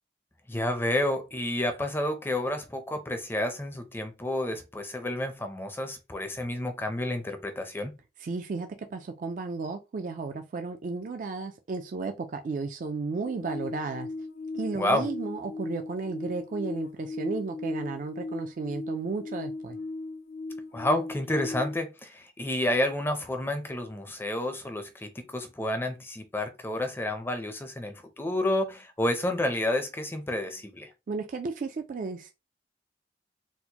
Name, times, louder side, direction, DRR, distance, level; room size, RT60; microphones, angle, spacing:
voice 1, 0.5-7.9 14.7-15.1 20.7-30.9, left 1 dB, 15° left, 0.5 m, -30 dB
voice 2, 8.2-14.1 14.5-19.8 31.1-32.3, right 4 dB, 50° right, 0.3 m, -34 dB
sound 1, 13.2-21.8, left 2 dB, 70° left, 0.3 m, -37 dB
4.2 x 2.1 x 2.8 m
head